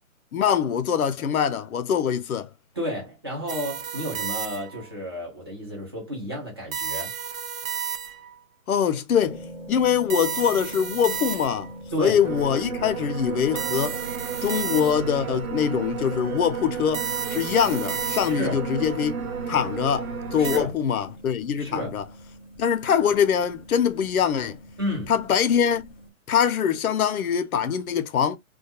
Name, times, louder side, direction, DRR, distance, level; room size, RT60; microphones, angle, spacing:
voice 1, 0.3-2.5 8.7-11.7 12.0-14.0 14.4-17.0 17.3-19.2 19.5-22.0 22.6-24.6 25.1-25.9 26.3-28.4, left 8 dB, 80° left, 0.7 m, -23 dB
voice 2, 2.7-7.1 11.9-12.2 18.4-18.6 20.4-20.8 21.6-22.0 24.8-25.1, equal, 20° right, 0.6 m, -31 dB
sound 1, 3.5-4.9 6.7-8.4 10.1-11.8 13.5-15.2 16.9-18.6 20.4-20.6, right 7 dB, 70° right, 0.6 m, -32 dB
sound 2, 9.2-26.1, right 1 dB, 10° left, 0.9 m, -44 dB
sound 3, 12.2-20.6, right 6 dB, 85° right, 1.1 m, -33 dB
2.3 x 2.2 x 2.8 m
hypercardioid pair, 170°, 42 cm